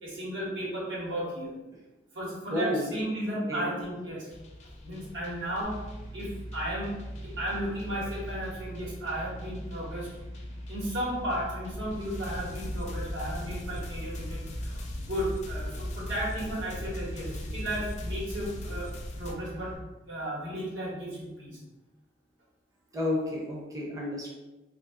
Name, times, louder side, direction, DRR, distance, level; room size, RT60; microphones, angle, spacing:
voice 1, 0.0-1.5 2.1-4.3 4.8-5.8 6.1-10.1 10.7-19.8 20.0-21.6, right 1 dB, 85° right, -6 dB, 1.3 m, -34 dB
voice 2, 2.5-2.8 3.5-3.7 22.9-24.3, left 1 dB, 20° right, -3 dB, 0.5 m, -31 dB
sound 1, 4.3-19.3, left 1 dB, 40° left, 0.4 m, -41 dB
sound 2, 5.6-19.7, equal, 60° right, 1.0 m, -42 dB
2.6 x 2.5 x 3.5 m, 1.1 s
head